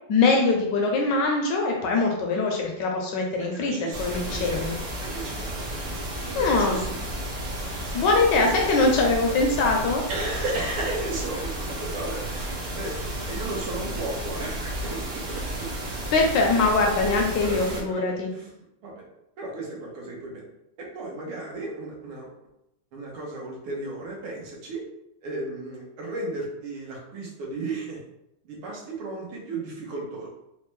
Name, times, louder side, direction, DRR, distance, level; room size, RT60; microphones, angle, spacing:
voice 1, 0.1-4.8 6.3-6.8 7.9-10.0 16.1-18.3, left 3 dB, 75° left, 1 dB, 1.0 m, -22 dB
voice 2, 3.5-4.6 5.0-5.6 6.3-7.0 8.4-8.8 10.1-13.0 13.3-15.7 17.4-18.0 18.3-18.5 18.8-19.1 19.4-20.4 20.8-22.3 22.9-24.8 25.2-28.0 28.4-30.3, right 2 dB, 85° right, -2 dB, 1.7 m, -34 dB
sound 1, 3.9-17.8, right 1 dB, 65° right, 1.0 m, -32 dB
4.2 x 2.1 x 3.0 m, 0.85 s
omnidirectional pair, 2.3 m